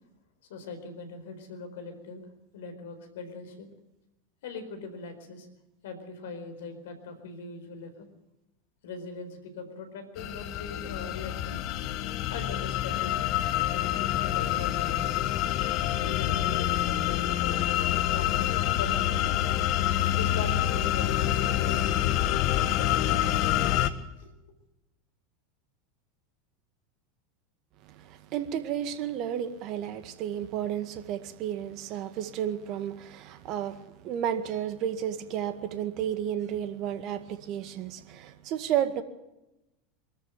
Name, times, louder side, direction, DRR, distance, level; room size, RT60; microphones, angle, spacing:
voice 1, 0.5-2.3 2.5-3.7 4.4-5.5 5.8-8.1 8.8-11.7 12.3-13.4 13.7-15.3 16.0-17.8 18.1-19.4 20.1-21.9 22.5-23.9 24.2-24.3, left 4 dB, 75° left, 9 dB, 4.4 m, -41 dB
sound 1, 10.2-23.9, left 12 dB, 55° left, 1.4 m, -27 dB
voice 2, 27.8-39.0, right 10 dB, 50° right, 10 dB, 1.9 m, -32 dB
23.0 x 13.5 x 9.2 m, 0.94 s
hypercardioid pair, 90°, 0 cm